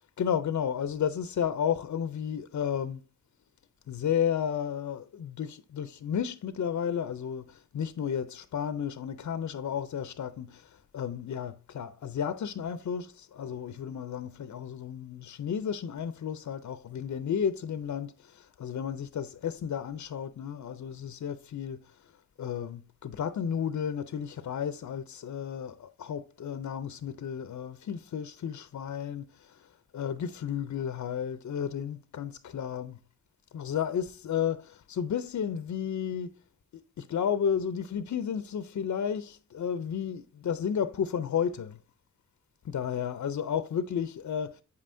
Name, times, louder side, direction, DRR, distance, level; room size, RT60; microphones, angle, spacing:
voice 1, 0.2-3.0 3.9-21.8 22.4-29.6 29.9-33.0 33.5-36.3 36.7-41.8 42.6-44.5, left 8 dB, 60° left, 0.5 m, -32 dB
7.9 x 5.5 x 2.6 m
cardioid pair, 60°, 33 cm